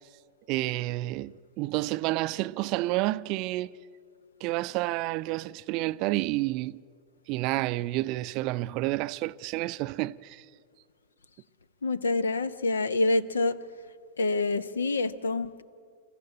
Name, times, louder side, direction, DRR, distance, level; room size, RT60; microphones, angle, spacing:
voice 1, 0.5-3.8 4.4-6.8 7.3-10.4, right 18 dB, 40° right, 0.4 m, -30 dB
voice 2, 11.8-13.6 14.2-15.6, left 2 dB, 70° left, 0.7 m, -27 dB
27.0 x 14.5 x 8.5 m
figure-of-eight pair, 90°, 0 cm